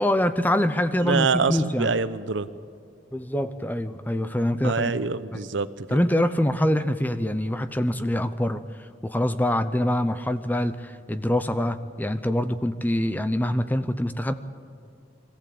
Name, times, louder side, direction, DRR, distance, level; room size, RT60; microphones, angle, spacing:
voice 1, 0.0-1.9 3.1-4.9 5.3-5.4 5.9-14.3, left 1 dB, 10° left, 11 dB, 0.6 m, -25 dB
voice 2, 1.0-2.5 4.6-6.0, right 4 dB, 75° right, 14 dB, 0.7 m, -25 dB
23.0 x 14.5 x 8.5 m, 2.3 s
head